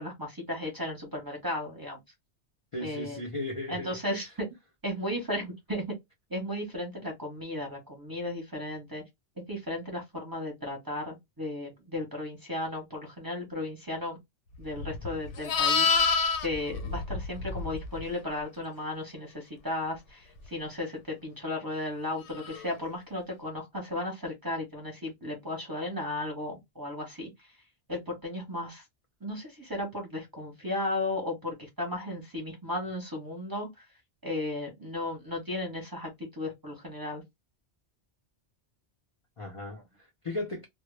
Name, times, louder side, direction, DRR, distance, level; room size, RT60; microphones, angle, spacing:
voice 1, 0.0-2.0 2.8-3.2 3.7-4.5 4.8-6.0 6.3-9.0 9.4-14.2 14.6-15.9 16.4-27.3 27.9-28.8 29.2-33.7 34.2-37.2, left 1 dB, 20° right, 0.7 m, -35 dB
voice 2, 2.7-4.0 39.4-40.6, left 2 dB, 45° left, 0.4 m, -36 dB
Livestock farm animals working animals, 14.7-18.0 22.4-22.6, left 5 dB, 85° left, 0.9 m, -27 dB
2.0 x 2.0 x 3.1 m
omnidirectional pair, 1.2 m